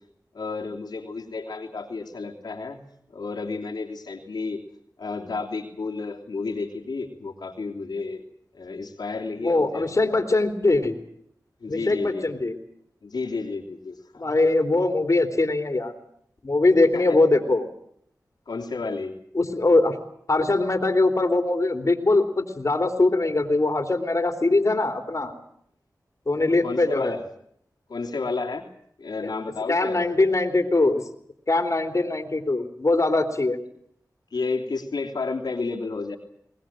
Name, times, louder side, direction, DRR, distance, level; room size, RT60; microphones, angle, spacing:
voice 1, 0.3-2.8 3.1-4.6 5.0-8.2 8.5-10.2 11.6-12.4 13.0-14.3 16.9-17.2 18.5-19.1 26.5-27.2 27.9-28.7 29.0-30.0 34.3-36.2, left 3 dB, 80° left, 0 dB, 3.1 m, -31 dB
voice 2, 9.4-10.9 11.7-12.6 14.2-15.9 16.4-17.7 19.3-20.0 20.3-25.3 26.3-27.2 29.7-31.0 31.5-33.6, left 2 dB, 50° left, 6 dB, 3.3 m, -22 dB
22.0 x 19.5 x 8.9 m, 0.69 s
cardioid pair, 50°, 7 cm